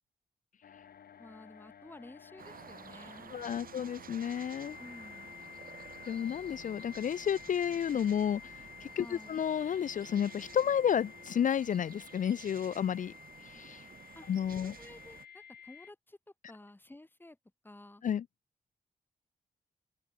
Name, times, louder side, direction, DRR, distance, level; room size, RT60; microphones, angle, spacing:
sound 1, 0.6-15.9, left 8 dB, 85° left, 2.8 m, -52 dB
voice 1, 1.2-3.6 4.8-5.3 9.0-9.4 14.1-14.3 14.6-16.2 16.5-17.4 17.6-18.0, left 2 dB, 15° left, 1.4 m, -52 dB
sound 2, 2.4-15.2, right 7 dB, 70° right, 4.9 m, -52 dB
voice 2, 3.3-4.8 6.1-13.1 13.4-13.9 14.3-14.7 18.0-18.2, left 9 dB, 60° left, 0.4 m, -31 dB
open air
cardioid pair, 90°, 15 cm